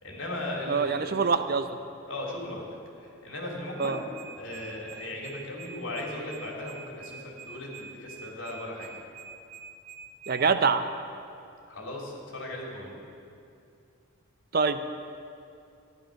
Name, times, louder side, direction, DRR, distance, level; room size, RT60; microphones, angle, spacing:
voice 1, 0.0-1.3 2.1-2.7 3.0-4.0 4.4-8.9 11.7-13.0, left 1 dB, 65° left, -2 dB, 3.1 m, -37 dB
voice 2, 0.7-1.8 3.8-4.0 10.3-10.8 14.5-14.8, right 5 dB, 45° right, 10 dB, 0.6 m, -25 dB
sound 1, 3.8-10.4, right 7 dB, 65° right, 1.3 m, -46 dB
14.0 x 11.0 x 6.4 m, 2.5 s
head